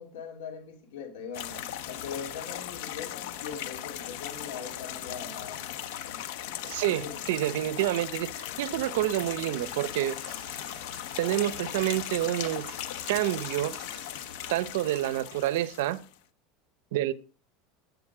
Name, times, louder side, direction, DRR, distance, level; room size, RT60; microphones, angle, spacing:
voice 1, 0.0-5.6 6.9-7.1, left 6 dB, 85° left, 3.1 m, -41 dB
sound 1, 1.3-16.1, left 11 dB, 70° left, 1.0 m, -38 dB
voice 2, 6.6-10.2 11.2-12.7 13.1-13.8 14.5-16.0 16.9-17.1, right 14 dB, 80° right, 0.7 m, -28 dB
sound 2, 9.5-14.8, right 7 dB, 30° right, 2.2 m, -51 dB
12.0 x 8.2 x 4.9 m
supercardioid pair, 150°, 0 cm